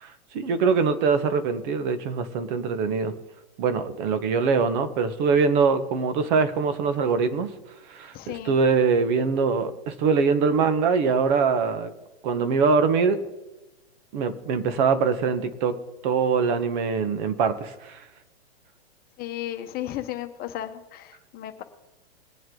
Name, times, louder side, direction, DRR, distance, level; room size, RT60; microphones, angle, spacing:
voice 1, 0.0-3.1 3.6-7.5 7.9-8.1 8.4-11.9 12.2-13.2 14.1-15.8 16.0-18.0, right 5 dB, 45° right, 11 dB, 1.4 m, -23 dB
voice 2, 8.1-8.5 19.2-21.6, left 12 dB, 30° left, 7 dB, 1.1 m, -34 dB
21.5 x 7.8 x 3.9 m, 1.0 s
hypercardioid pair, 130°, 32 cm